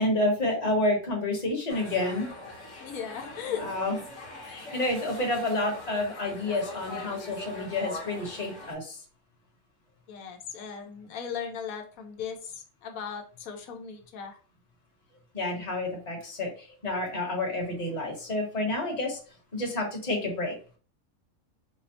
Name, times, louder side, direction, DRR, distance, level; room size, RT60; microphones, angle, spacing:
voice 1, 0.0-2.3 3.6-4.0 4.4-9.0 15.3-19.2 19.5-20.5, left 1 dB, 30° left, -1 dB, 1.0 m, -29 dB
sound 1, 1.7-8.7, left 2 dB, 65° left, 1.1 m, -42 dB
voice 2, 2.8-3.7 10.1-14.4, left 7 dB, 90° left, 3 dB, 1.1 m, -37 dB
4.2 x 2.0 x 2.7 m, 0.38 s
omnidirectional pair, 1.5 m